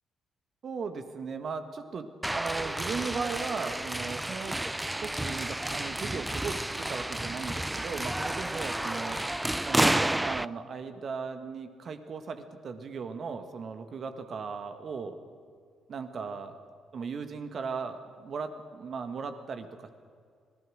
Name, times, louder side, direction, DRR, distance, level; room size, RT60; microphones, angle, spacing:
voice 1, 0.6-4.6 5.0-9.2 9.7-15.2 15.9-16.6 16.9-19.9, right 5 dB, 50° right, 8 dB, 1.9 m, -37 dB
sound 1, 2.2-10.5, right 1 dB, 10° right, 0.4 m, -31 dB
25.5 x 18.5 x 6.5 m, 2.1 s
figure-of-eight pair, 45°, 0 cm